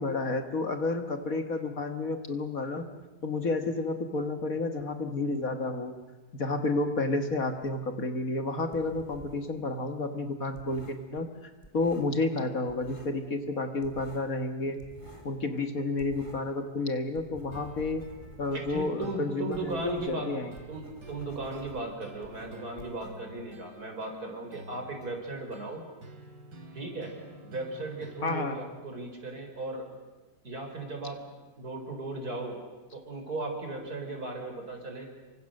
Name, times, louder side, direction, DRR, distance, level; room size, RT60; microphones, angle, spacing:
voice 1, 0.0-2.8 3.2-5.9 6.3-11.3 11.7-14.8 15.2-18.0 18.4-20.5 28.2-28.6, left 3 dB, 50° left, 6 dB, 2.0 m, -31 dB
sound 1, 7.6-9.6 9.8-12.4 12.7-13.3 13.5-16.6 16.9-23.6, equal, 15° left, 3.3 m, -51 dB
sound 2, 17.5-28.5, right 2 dB, 70° right, 3.4 m, -50 dB
voice 2, 18.5-20.3 20.7-25.9 26.7-27.1 27.4-29.9 30.4-31.3 31.6-32.6 32.9-35.1, right 2 dB, 55° right, 3 dB, 5.0 m, -37 dB
27.5 x 24.5 x 6.6 m, 1.2 s
omnidirectional pair, 1.9 m